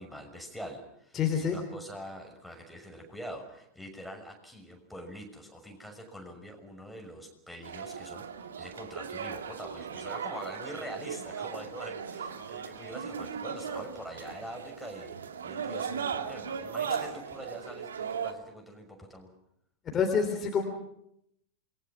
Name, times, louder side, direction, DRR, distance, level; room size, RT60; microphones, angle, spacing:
voice 1, 0.0-1.2 1.4-15.1 15.4-19.3, equal, ahead, 3 dB, 6.3 m, -44 dB
voice 2, 1.1-1.6 19.9-20.6, left 6 dB, 25° left, 4 dB, 3.6 m, -27 dB
sound 1, 7.6-18.3, right 7 dB, 65° right, 2.0 m, -37 dB
28.0 x 22.0 x 6.1 m, 0.76 s
figure-of-eight pair, 90°, 0 cm